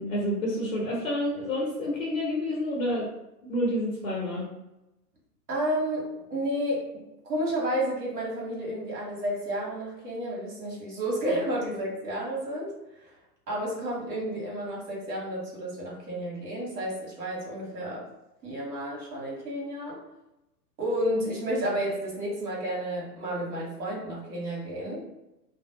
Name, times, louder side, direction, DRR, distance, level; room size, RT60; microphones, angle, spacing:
voice 1, 0.0-3.1 3.4-4.5, left 1 dB, 55° left, -4 dB, 0.9 m, -29 dB
voice 2, 5.5-6.8 7.2-12.7 13.0-13.1 13.5-18.1 18.4-20.0 20.8-25.0, equal, 65° right, -4 dB, 1.2 m, -31 dB
2.5 x 2.0 x 2.8 m, 0.92 s
figure-of-eight pair, 110°, 49 cm